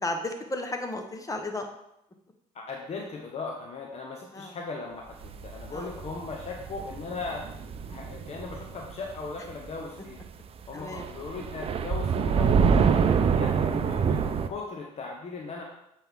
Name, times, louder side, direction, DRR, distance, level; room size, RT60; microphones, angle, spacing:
voice 1, 0.0-1.7 4.3-4.5 5.7-5.9 10.7-11.0 13.3-13.5, left 2 dB, 20° left, 5 dB, 1.1 m, -34 dB
voice 2, 2.5-7.5 7.9-10.2 10.7-12.5 13.4-15.6, left 4 dB, 45° left, 0 dB, 1.0 m, -38 dB
sound 1, 5.2-9.8 10.1-10.3 10.7-14.5, right 6 dB, 40° right, 0.5 m, -26 dB
7.7 x 4.5 x 3.6 m, 0.80 s
supercardioid pair, 80°, 15 cm